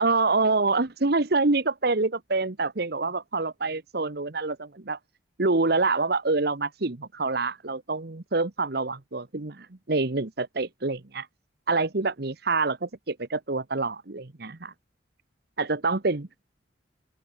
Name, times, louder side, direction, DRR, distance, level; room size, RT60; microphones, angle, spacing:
voice 1, 0.0-5.0 5.4-11.3 11.7-14.7 15.6-16.3, right 3 dB, 55° right, 1.2 m, -26 dB
open air
head